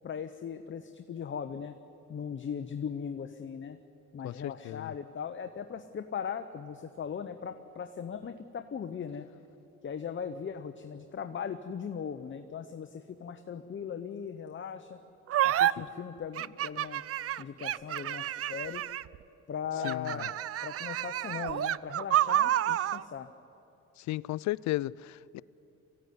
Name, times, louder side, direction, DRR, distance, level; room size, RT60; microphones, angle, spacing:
voice 1, 0.0-1.8 2.1-3.8 4.1-9.3 9.8-15.0 15.4-17.0 17.4-18.8 19.5-23.3, left 7 dB, 40° left, 0.9 m, -39 dB
voice 2, 4.2-4.9 19.8-20.1 24.0-25.4, left 16 dB, 70° left, 0.4 m, -34 dB
sound 1, 15.3-15.7 16.4-19.2 19.8-23.0, right 12 dB, 50° right, 0.5 m, -29 dB
22.5 x 16.0 x 9.5 m
cardioid pair, 90°, 30 cm